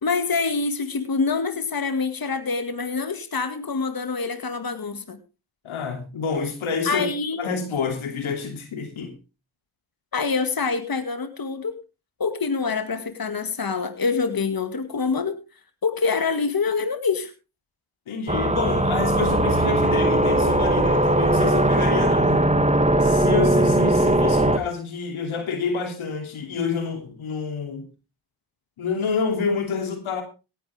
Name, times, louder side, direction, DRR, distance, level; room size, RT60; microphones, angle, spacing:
voice 1, 0.0-5.2 6.9-7.4 10.1-11.7 12.2-15.4 15.8-17.3, left 4 dB, 45° left, 2.1 m, -25 dB
voice 2, 5.6-7.1 7.4-9.1 18.1-22.4 23.0-27.9 28.8-30.2, left 5 dB, 85° left, 2.9 m, -28 dB
sound 1, 18.3-24.6, right 1 dB, 15° right, 2.1 m, -19 dB
17.5 x 11.5 x 3.5 m
supercardioid pair, 40°, 47 cm